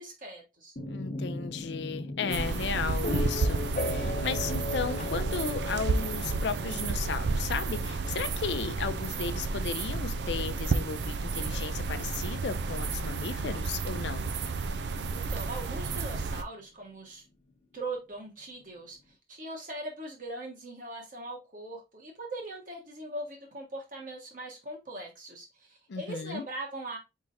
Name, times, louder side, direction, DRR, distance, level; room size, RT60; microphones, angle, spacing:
voice 1, 0.0-0.8 15.1-17.2 17.7-19.0 19.3-27.0, right 2 dB, 50° right, 1.6 m, -40 dB
sound 1, 0.8-14.5, left 2 dB, 40° left, 0.7 m, -39 dB
voice 2, 0.9-14.2 25.9-26.4, left 5 dB, 85° left, 0.5 m, -35 dB
sound 2, 2.3-16.4, right 4 dB, 85° right, 0.5 m, -31 dB
4.4 x 3.7 x 2.7 m
head